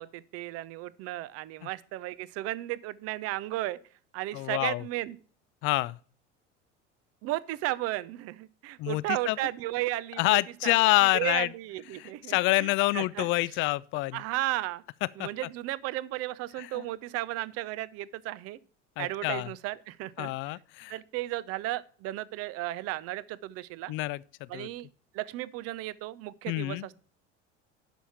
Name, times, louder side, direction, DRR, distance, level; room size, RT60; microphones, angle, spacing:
voice 1, 0.0-3.8 4.1-5.2 7.2-10.7 11.0-13.3 14.1-14.8 15.2-18.6 19.0-20.6 20.9-23.9 24.5-24.9 25.1-26.9, right 16 dB, 40° right, 0.6 m, -34 dB
voice 2, 4.3-4.8 5.6-6.0 8.8-9.4 10.2-11.5 11.9-14.2 15.2-15.3 16.6-16.8 19.0-19.5 20.2-21.0 23.9-24.7 26.5-26.9, left 20 dB, 35° left, 0.4 m, -27 dB
11.5 x 5.6 x 4.3 m
figure-of-eight pair, 70°, 36 cm